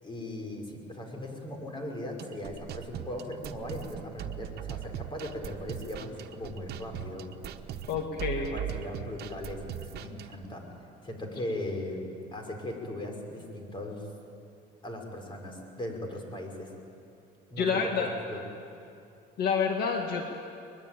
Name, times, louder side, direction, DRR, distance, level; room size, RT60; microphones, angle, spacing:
voice 1, 0.0-7.3 8.3-10.6 11.0-12.0 12.3-14.1 14.8-16.7 17.5-18.4, left 1 dB, 30° left, 2 dB, 5.1 m, -38 dB
sound 1, 2.2-10.5, right 10 dB, 70° right, 1.2 m, -40 dB
voice 2, 7.9-8.5 17.6-18.1 19.4-20.3, left 6 dB, 65° left, 3 dB, 1.9 m, -28 dB
22.5 x 22.0 x 9.1 m, 2.6 s
cardioid pair, 110°, 17 cm